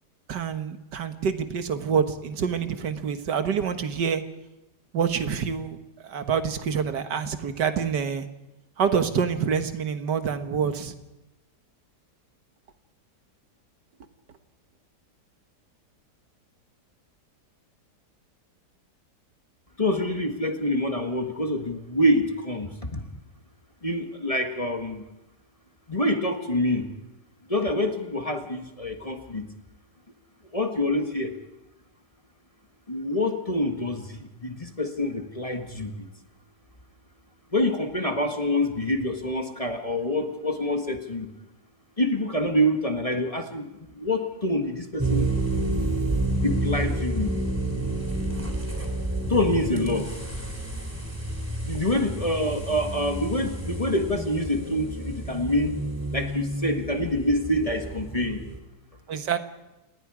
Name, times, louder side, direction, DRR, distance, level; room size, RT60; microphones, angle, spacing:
voice 1, 0.3-4.2 4.9-5.8 6.0-8.3 8.8-11.0 59.1-59.4, right 7 dB, 80° right, 9 dB, 1.9 m, -26 dB
voice 2, 19.8-23.0 23.8-25.0 25.9-26.9 27.5-29.5 30.5-31.3 32.9-36.0 37.5-41.3 42.0-45.3 46.4-47.3 49.3-50.2 51.6-55.8 56.1-58.4, left 1 dB, 20° left, 4 dB, 1.6 m, -26 dB
sound 1, 45.0-58.6, right 1 dB, 10° right, 3.2 m, -30 dB
29.5 x 19.0 x 4.9 m, 0.98 s
omnidirectional pair, 1.8 m